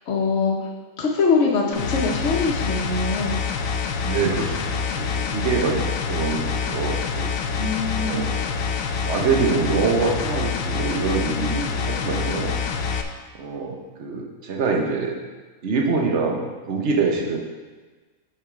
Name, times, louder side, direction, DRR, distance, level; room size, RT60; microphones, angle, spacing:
voice 1, 0.1-0.6 1.0-3.4 7.5-8.2, left 4 dB, 60° left, -2 dB, 1.2 m, -23 dB
sound 1, 1.7-13.0, left 5 dB, 90° left, 1.1 m, -26 dB
voice 2, 4.0-7.3 8.0-8.6 9.0-12.5 13.4-15.1 15.6-17.4, right 4 dB, 60° right, 0 dB, 1.3 m, -25 dB
6.7 x 5.5 x 4.9 m, 1.3 s
omnidirectional pair, 1.4 m